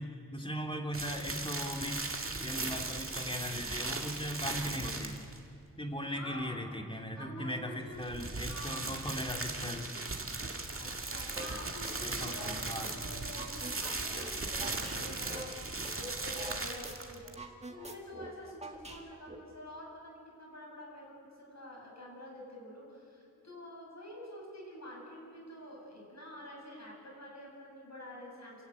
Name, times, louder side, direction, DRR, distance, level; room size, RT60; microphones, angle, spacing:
voice 1, 0.0-5.2 5.8-9.9 12.0-12.9, equal, 15° left, 2 dB, 2.3 m, -39 dB
sound 1, 0.9-5.4 7.9-17.4, right 3 dB, 40° right, 2.0 m, -38 dB
voice 2, 6.1-6.7 7.1-8.0 8.4-9.0 10.8-28.6, equal, 50° left, -3 dB, 7.7 m, -48 dB
sound 2, 11.4-11.5 11.8-12.9 13.2-16.6 16.8-16.9 17.2-19.3, right 2 dB, 20° right, 1.9 m, -46 dB
28.0 x 14.5 x 9.3 m, 2.5 s
wide cardioid pair, 90°, 34 cm